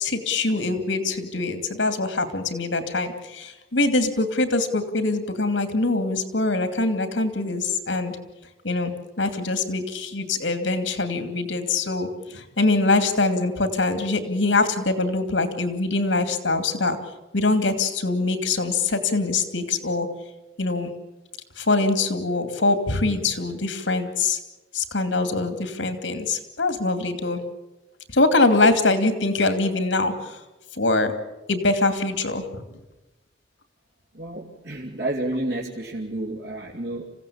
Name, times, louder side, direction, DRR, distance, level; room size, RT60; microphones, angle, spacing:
voice 1, 0.0-8.2 8.6-8.9 9.2-17.0 17.3-20.1 20.6-20.9 21.6-24.4 24.7-27.4 28.1-30.4 30.7-31.1 31.5-32.6, left 3 dB, 90° left, 8 dB, 2.7 m, -23 dB
voice 2, 34.1-37.1, right 1 dB, 70° right, -3 dB, 2.7 m, -30 dB
27.5 x 16.5 x 8.7 m, 1.0 s
head